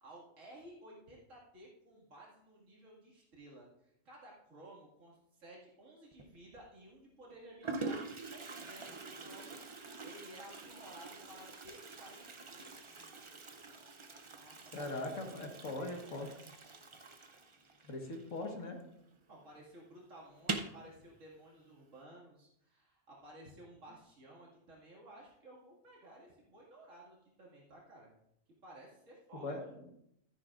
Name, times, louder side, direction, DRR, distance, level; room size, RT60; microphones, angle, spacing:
voice 1, 0.0-13.2 14.3-16.5 19.3-28.1 28.6-29.5, right 1 dB, 80° right, -4 dB, 2.5 m, -56 dB
Toilet flush, 6.1-6.6 7.3-7.4 7.6-18.9 19.2-19.3 19.6-19.7 20.3-20.8, right 3 dB, 35° right, 0.5 m, -45 dB
voice 2, 14.7-16.3 17.8-18.8 29.4-29.9, left 2 dB, 80° left, 3 dB, 1.9 m, -40 dB
13.0 x 10.0 x 2.5 m, 0.79 s
omnidirectional pair, 1.3 m